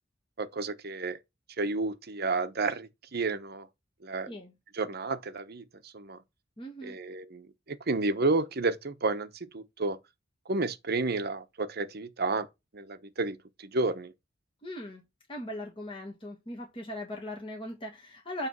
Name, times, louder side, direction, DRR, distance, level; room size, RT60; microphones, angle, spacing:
voice 1, 0.4-1.2 1.6-3.7 4.0-4.3 4.8-5.6 5.9-6.2 6.8-9.3 9.5-10.0 10.5-12.5 12.7-14.1, right 3 dB, 55° right, 1.0 m, -31 dB
voice 2, 6.6-7.0 14.6-15.0 15.3-18.5, left 1 dB, 30° left, 1.7 m, -39 dB
9.4 x 3.3 x 6.1 m
head